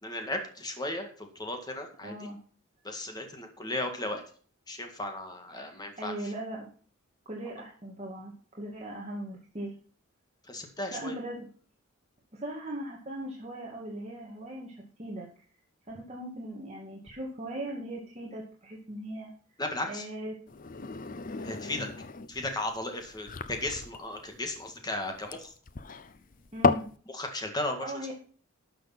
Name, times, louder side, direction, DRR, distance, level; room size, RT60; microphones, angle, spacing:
voice 1, 0.0-2.1 2.8-4.2 4.7-6.1 10.5-11.2 19.6-20.1 21.4-21.9 22.3-25.5 27.1-28.1, left 2 dB, 20° left, 4 dB, 1.9 m, -35 dB
voice 2, 2.0-2.4 5.5-6.7 7.3-9.7 10.9-11.5 12.3-15.3 15.9-19.3 19.9-20.4 26.5-26.8 27.8-28.1, right 1 dB, 30° right, -3 dB, 2.2 m, -39 dB
sound 1, 20.5-27.0, left 4 dB, 40° left, 0.6 m, -33 dB
12.5 x 6.7 x 5.9 m, 0.43 s
head